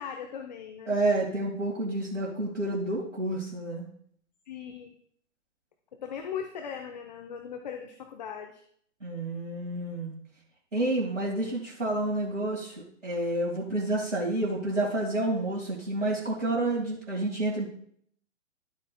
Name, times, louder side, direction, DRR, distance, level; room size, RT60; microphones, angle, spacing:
voice 1, 0.0-1.0 4.5-4.9 5.9-8.6, left 7 dB, 35° left, 5 dB, 0.6 m, -39 dB
voice 2, 0.9-3.9 9.0-10.2 10.7-17.7, right 2 dB, 75° right, -4 dB, 2.0 m, -29 dB
11.5 x 8.4 x 2.2 m, 0.65 s
figure-of-eight pair, 120°, 38 cm